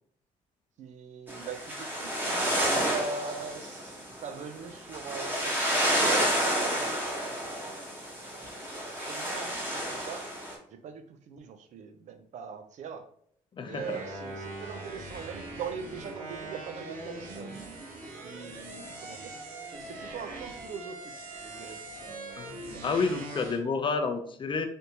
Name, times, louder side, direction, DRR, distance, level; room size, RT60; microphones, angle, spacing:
voice 1, 0.8-6.9 8.9-10.2 10.7-13.1 13.6-17.5 18.2-19.3 19.7-21.1 21.4-23.0, right 6 dB, 60° right, 8 dB, 0.5 m, -41 dB
sound 1, 1.3-10.5, equal, 15° right, 1.1 m, -30 dB
voice 2, 13.6-14.0 18.5-18.6 22.4-24.7, left 4 dB, 35° left, 6 dB, 0.5 m, -30 dB
sound 2, 13.7-23.6, right 2 dB, 85° right, 1.0 m, -42 dB
3.4 x 2.7 x 2.8 m, 0.64 s
supercardioid pair, 80°, 14 cm